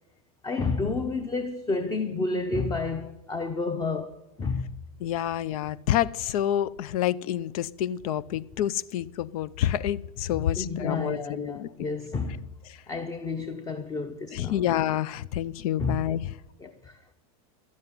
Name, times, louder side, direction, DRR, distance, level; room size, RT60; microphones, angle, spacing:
voice 1, 0.4-4.8 10.6-12.5 12.9-14.6 15.8-16.0 16.6-17.0, left 3 dB, 20° left, 0.8 m, -30 dB
voice 2, 5.0-11.7 12.7-12.8 14.3-16.3, left 11 dB, 70° left, 0.6 m, -28 dB
11.5 x 7.5 x 9.7 m
supercardioid pair, 130°, 19 cm